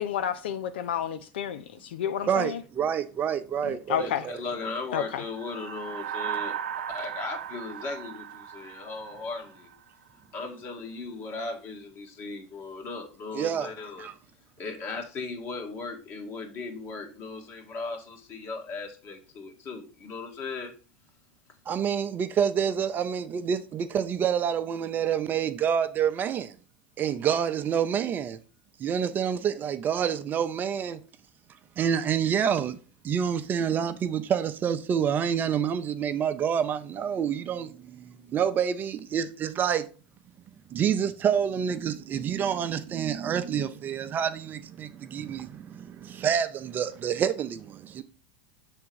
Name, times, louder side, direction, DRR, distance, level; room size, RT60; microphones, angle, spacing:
voice 1, 0.0-2.6 3.6-4.3 4.9-5.2, left 9 dB, 85° left, 0.5 m, -31 dB
voice 2, 2.3-4.4 13.3-13.7 14.0-14.1 21.7-26.5 27.0-28.4 28.8-31.0 31.8-32.8 33.0-39.8 40.7-48.0, right 8 dB, 35° right, 0.5 m, -28 dB
voice 3, 4.0-9.7 10.3-14.1 14.6-20.7, left 3 dB, 40° left, 1.8 m, -37 dB
sound 1, 5.2-9.8, right 9 dB, 90° right, 0.4 m, -37 dB
6.6 x 3.5 x 4.6 m
hypercardioid pair, 105°, 6 cm